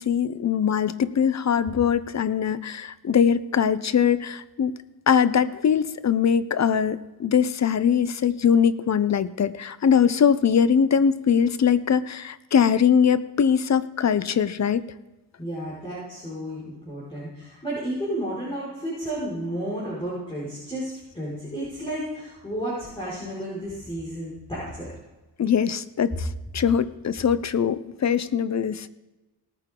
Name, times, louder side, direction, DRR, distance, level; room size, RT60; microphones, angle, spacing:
voice 1, 0.0-4.7 5.1-14.8 25.4-26.3 26.5-28.9, left 7 dB, 45° left, 15 dB, 0.7 m, -22 dB
voice 2, 15.4-24.9, right 1 dB, 15° left, -7 dB, 5.2 m, -32 dB
19.0 x 9.2 x 3.8 m, 1.1 s
cardioid pair, 90°, 39 cm